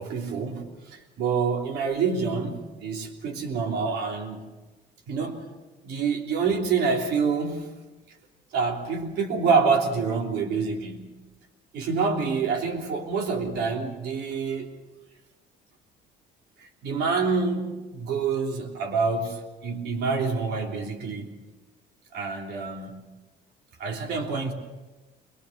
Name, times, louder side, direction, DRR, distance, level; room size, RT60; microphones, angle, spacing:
voice 1, 0.1-4.4 5.1-5.4 5.8-7.6 8.5-11.1 11.7-14.7 16.6-21.3 22.1-23.0 23.8-24.5, right 5 dB, 75° right, 3.2 m, -27 dB
22.5 x 22.0 x 6.6 m
cardioid pair, 110°, 17 cm